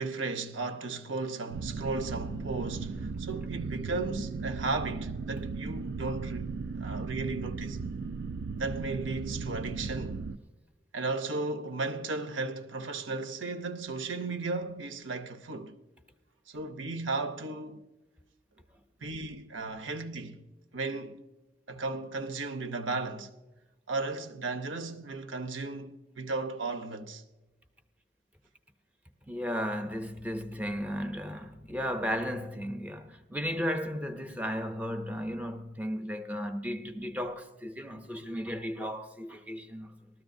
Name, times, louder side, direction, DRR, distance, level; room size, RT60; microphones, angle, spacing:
voice 1, 0.0-6.5 6.8-7.8 8.6-10.2 10.9-15.8 16.5-17.8 19.0-20.4 20.7-21.2 21.7-23.3 23.9-27.2, right 3 dB, 85° right, 0.7 m, -35 dB
sound 1, 1.5-10.4, right 4 dB, 60° right, 0.3 m, -36 dB
voice 2, 29.3-39.9, equal, 10° right, 0.6 m, -35 dB
19.0 x 13.5 x 2.6 m
head